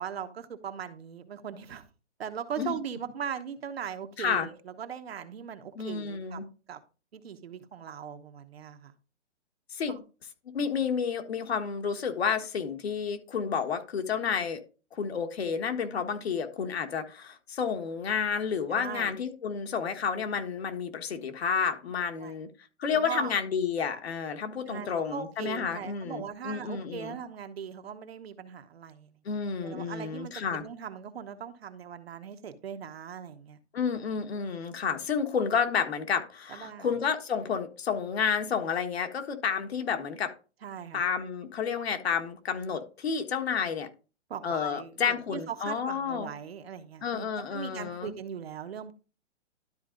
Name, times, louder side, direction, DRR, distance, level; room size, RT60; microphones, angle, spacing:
voice 1, 0.0-1.9 2.2-6.4 6.7-6.8 7.1-8.9 9.9-10.0 18.7-19.1 22.2-22.4 22.9-23.3 24.7-29.2 29.6-33.6 36.5-37.0 40.6-41.0 44.3-48.9, right 8 dB, 55° right, 7 dB, 1.1 m, -39 dB
voice 2, 4.2-4.5 5.7-6.4 9.7-10.0 10.5-14.6 14.9-22.5 22.8-27.2 29.2-30.6 33.7-40.3 40.9-43.9 44.4-46.3 47.0-48.1, left 6 dB, 60° left, 6 dB, 1.6 m, -30 dB
12.5 x 4.2 x 3.8 m, 0.33 s
hypercardioid pair, 170°, 36 cm